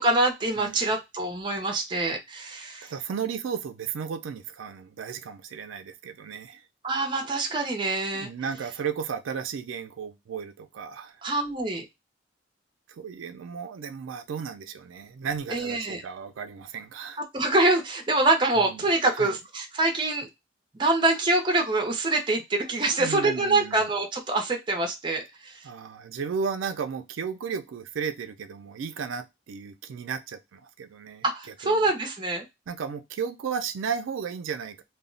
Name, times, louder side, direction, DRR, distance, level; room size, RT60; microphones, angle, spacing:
voice 1, 0.0-2.9 6.8-8.3 11.2-11.9 15.5-16.0 17.3-20.3 20.7-25.5 31.2-32.4, right 2 dB, 25° right, 3 dB, 0.5 m, -25 dB
voice 2, 0.6-0.9 2.8-6.7 8.1-11.2 12.9-17.2 18.6-18.9 19.1-19.4 23.0-23.9 25.6-31.2 31.6-31.9 32.7-34.8, right 6 dB, 90° right, 7 dB, 0.4 m, -34 dB
2.2 x 2.0 x 3.7 m, 0.21 s
head